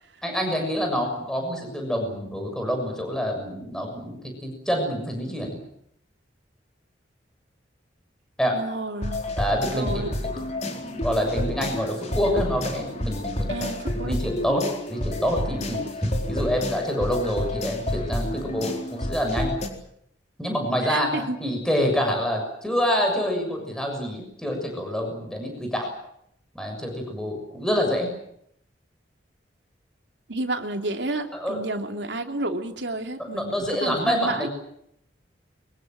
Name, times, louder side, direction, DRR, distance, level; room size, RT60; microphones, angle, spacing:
voice 1, 0.2-5.6 8.4-8.6 9.4-13.6 13.9-19.5 20.4-25.9 26.5-28.1 31.3-31.6 33.3-34.5, equal, 5° left, 2 dB, 6.9 m, -27 dB
voice 2, 8.5-9.2 9.7-10.1 13.5-14.2 20.8-21.4 30.3-33.6 33.8-34.5, right 2 dB, 75° right, 4 dB, 3.0 m, -30 dB
sound 1, 9.0-19.7, left 1 dB, 40° left, 4.3 m, -30 dB
24.5 x 24.0 x 7.8 m, 0.74 s
head